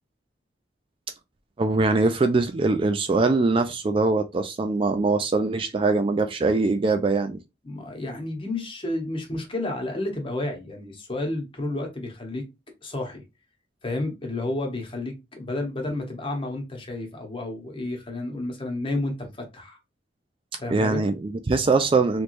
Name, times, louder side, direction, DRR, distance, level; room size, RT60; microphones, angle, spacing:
voice 1, 1.6-7.4 20.7-22.2, right 3 dB, 30° right, 0.3 m, -22 dB
voice 2, 7.6-12.4 12.8-13.2 13.8-19.8 20.6-21.0, left 2 dB, 30° left, 1.1 m, -31 dB
3.3 x 3.1 x 2.5 m
head